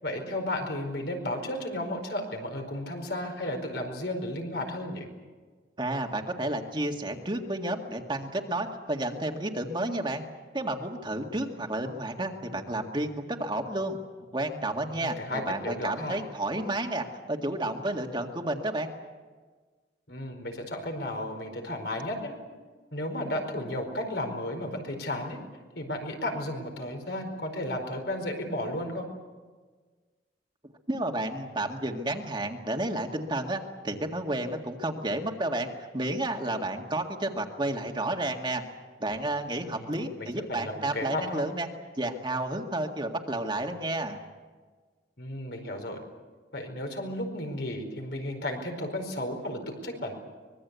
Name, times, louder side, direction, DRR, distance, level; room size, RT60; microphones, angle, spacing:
voice 1, 0.0-5.1 14.9-16.2 20.1-22.3 22.9-25.4 25.7-29.1 39.6-41.4 45.2-46.0 46.5-50.1, left 1 dB, 70° left, 4 dB, 4.7 m, -34 dB
voice 2, 5.8-10.2 10.5-14.0 14.3-18.9 30.9-35.7 35.9-38.6 39.0-41.7 42.0-44.2, right 1 dB, 25° right, 3 dB, 2.0 m, -31 dB
24.5 x 21.5 x 8.3 m, 1.4 s
head